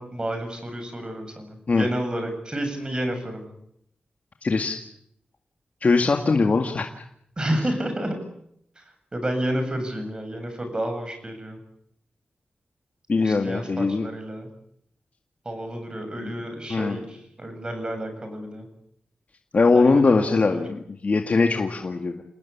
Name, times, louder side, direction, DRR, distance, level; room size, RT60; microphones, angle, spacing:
voice 1, 0.0-3.5 7.4-8.2 8.8-8.9 9.1-11.6 13.2-14.5 15.4-18.7 19.7-20.6, right 1 dB, 30° right, 6 dB, 7.9 m, -30 dB
voice 2, 4.4-4.8 5.8-6.9 13.1-14.1 16.2-16.3 16.7-17.0 19.5-22.2, left 4 dB, 55° left, 4 dB, 2.0 m, -21 dB
28.5 x 19.0 x 8.6 m, 0.73 s
wide cardioid pair, 80°, 3 cm